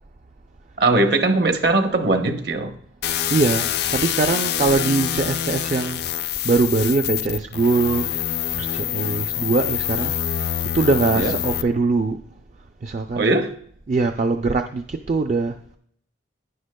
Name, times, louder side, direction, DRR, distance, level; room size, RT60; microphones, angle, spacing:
voice 1, 0.8-2.8 11.1-11.3 13.2-13.5, right 2 dB, 55° right, 0.9 m, -20 dB
sound 1, 3.0-11.6, left 10 dB, 55° left, 0.4 m, -25 dB
voice 2, 3.3-8.3 8.5-10.5 10.7-12.2 12.8-13.4 13.9-15.6, right 3 dB, 40° right, 0.3 m, -22 dB
11.5 x 9.9 x 2.2 m
head